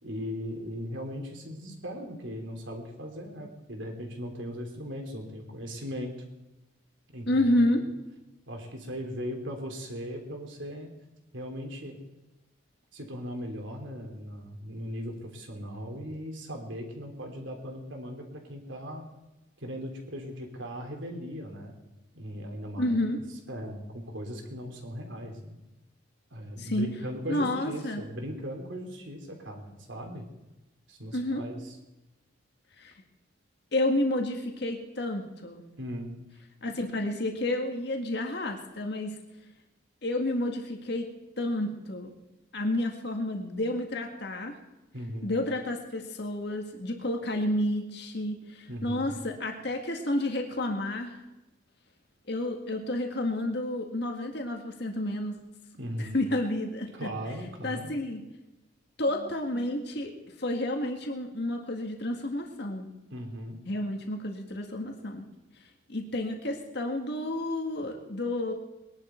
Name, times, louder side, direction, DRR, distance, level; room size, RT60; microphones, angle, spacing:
voice 1, 0.0-6.2 7.1-7.4 7.8-7.9 8.5-10.9 11.3-12.0 12.9-19.1 19.6-21.7 22.1-23.0 23.5-25.6 26.3-30.3 30.9-31.7 35.8-36.1 44.9-45.3 48.7-49.1 55.8-56.2 56.9-57.9 63.1-63.6, equal, 70° right, 3 dB, 3.2 m, -38 dB
voice 2, 7.3-7.8 22.8-23.2 26.6-26.9 27.3-28.0 31.1-31.4 32.8-32.9 33.7-35.6 36.6-39.1 40.0-41.1 41.4-42.1 42.5-44.5 45.2-51.2 52.3-55.3 56.0-57.1 57.6-58.2 59.0-62.9 63.7-65.2 65.9-68.5, left 1 dB, 55° left, 3 dB, 1.9 m, -30 dB
21.5 x 11.0 x 4.5 m, 1.0 s
head